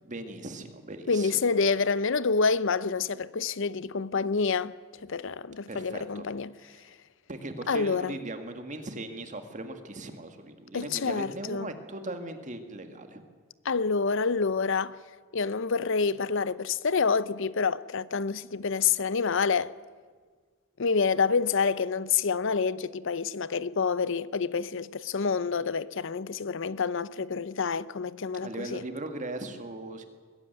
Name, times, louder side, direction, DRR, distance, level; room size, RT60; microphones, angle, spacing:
voice 1, 0.0-1.4 5.7-6.3 6.6-6.9 7.3-13.2 28.3-30.1, right 2 dB, 35° right, 1.9 m, -39 dB
voice 2, 1.1-4.7 5.0-6.5 7.7-8.1 10.7-11.7 13.6-15.0 15.3-19.7 20.8-28.8, left 5 dB, 65° left, 0.7 m, -27 dB
21.5 x 15.0 x 9.3 m
head